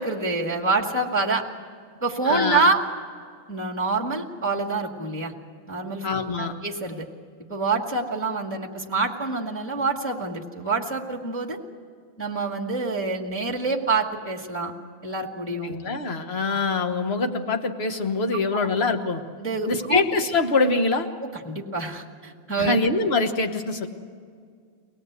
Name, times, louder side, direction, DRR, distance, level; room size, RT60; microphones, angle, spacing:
voice 1, 0.0-1.4 2.0-2.8 3.5-5.3 5.7-6.1 6.4-7.0 7.5-11.6 12.2-14.7 15.0-15.7 18.5-18.7 19.4-20.0 21.2-22.8, right 3 dB, 5° left, -2 dB, 1.7 m, -26 dB
voice 2, 2.2-2.8 6.0-6.5 15.6-19.2 19.7-21.1 22.6-23.9, left 3 dB, 35° left, 6 dB, 1.2 m, -24 dB
24.5 x 18.5 x 8.2 m, 2.1 s
omnidirectional pair, 2.4 m